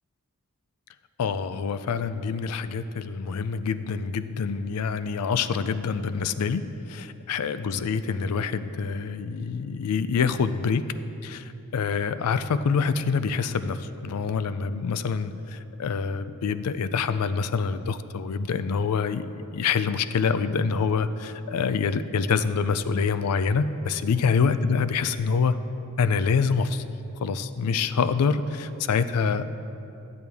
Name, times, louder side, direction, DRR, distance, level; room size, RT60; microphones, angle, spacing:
voice 1, 1.2-6.6 6.9-10.8 11.2-25.6 26.0-26.8 27.2-29.5, left 5 dB, 90° left, 12 dB, 0.4 m, -26 dB
12.5 x 7.9 x 3.5 m, 2.8 s
head